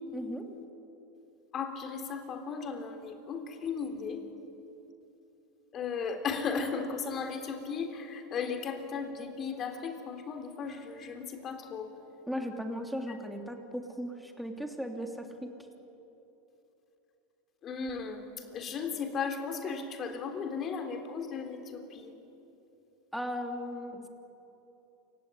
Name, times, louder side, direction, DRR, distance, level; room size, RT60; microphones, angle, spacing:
voice 1, 0.1-0.5 12.3-15.5 23.1-24.1, equal, ahead, 3 dB, 3.3 m, -37 dB
voice 2, 1.5-4.2 5.7-11.9 17.6-18.2 18.5-22.1, left 5 dB, 40° left, 5 dB, 3.6 m, -36 dB
28.0 x 16.5 x 9.9 m, 3.0 s
hypercardioid pair, 95°, 0 cm